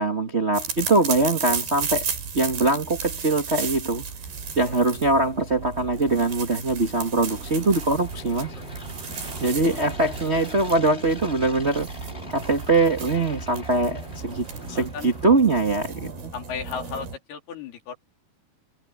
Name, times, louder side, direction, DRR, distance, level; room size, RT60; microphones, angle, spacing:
voice 1, 0.0-2.0 2.3-4.0 4.5-8.5 9.4-11.9 12.3-16.1, right 2 dB, 45° right, 0.8 m, -22 dB
sound 1, 0.5-17.2, right 6 dB, 90° right, 6.3 m, -34 dB
sound 2, 3.8-15.9, left 2 dB, 15° left, 4.7 m, -44 dB
voice 2, 14.7-15.2 16.3-18.0, left 6 dB, 85° left, 5.2 m, -36 dB
omnidirectional pair, 4.4 m